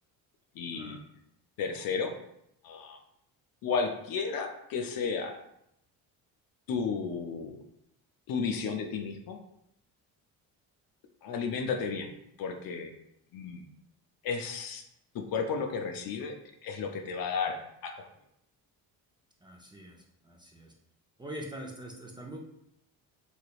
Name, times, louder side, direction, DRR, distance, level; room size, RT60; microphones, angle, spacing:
voice 1, 0.5-1.0 1.6-2.1 2.6-3.0 3.6-5.3 6.7-7.6 8.3-9.4 11.2-12.1 12.4-12.9 13.3-13.6 14.2-14.8 15.1-16.3 16.6-18.1, left 5 dB, 60° left, 4 dB, 0.6 m, -33 dB
voice 2, 19.4-20.7 21.2-22.4, right 1 dB, 10° right, -1 dB, 0.5 m, -44 dB
3.2 x 2.9 x 2.4 m, 0.78 s
cardioid pair, 85°, 39 cm